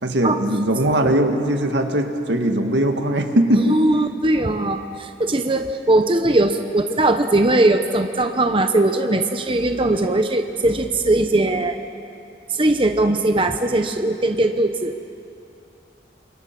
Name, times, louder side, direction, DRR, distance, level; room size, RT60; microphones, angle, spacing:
voice 1, 0.0-3.8, right 1 dB, 80° right, 5 dB, 2.0 m, -20 dB
voice 2, 3.5-11.8 12.5-14.9, right 2 dB, 30° right, 7 dB, 0.9 m, -19 dB
28.5 x 26.5 x 6.0 m, 2.6 s
head